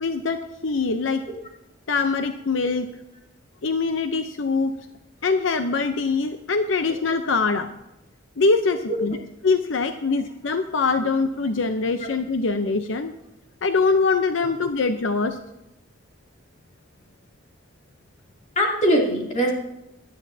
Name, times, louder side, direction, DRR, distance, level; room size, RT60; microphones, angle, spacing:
voice 1, 0.0-1.2 1.9-2.9 3.6-4.7 5.2-7.7 8.4-9.2 9.4-13.1 13.6-15.4, left 4 dB, 80° left, 8 dB, 0.7 m, -23 dB
voice 2, 18.6-19.5, equal, 40° left, -1 dB, 2.8 m, -22 dB
17.5 x 12.0 x 2.8 m, 0.88 s
head